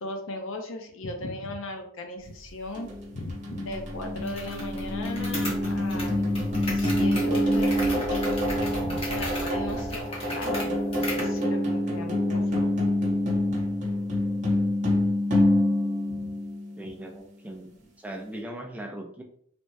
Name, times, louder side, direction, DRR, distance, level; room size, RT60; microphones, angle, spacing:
voice 1, 0.0-6.4 6.7-8.2 9.1-10.0 10.3-12.1 12.5-12.9 16.0-16.3, left 2 dB, 65° left, 4 dB, 0.6 m, -37 dB
sound 1, 2.2-10.0, right 1 dB, 75° right, 0.7 m, -42 dB
sound 2, 2.7-16.9, left 1 dB, 35° right, 0.8 m, -26 dB
sound 3, 4.3-11.4, left 1 dB, 30° left, 0.7 m, -37 dB
voice 2, 16.8-19.2, right 1 dB, 5° right, 2 dB, 0.4 m, -39 dB
3.3 x 2.0 x 2.6 m, 0.65 s
head